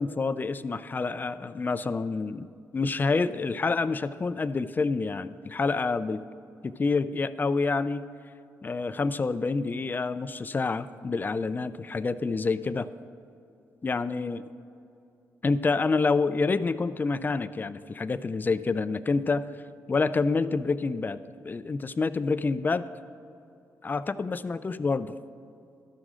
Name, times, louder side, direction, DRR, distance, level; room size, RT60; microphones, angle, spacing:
voice 1, 0.0-2.5 2.7-6.2 6.6-8.1 8.6-12.9 13.8-14.4 15.4-19.5 19.9-22.9 23.8-25.1, left 4 dB, 30° left, 14 dB, 0.4 m, -28 dB
12.5 x 6.3 x 3.7 m, 2.6 s
cardioid pair, 70°, 6 cm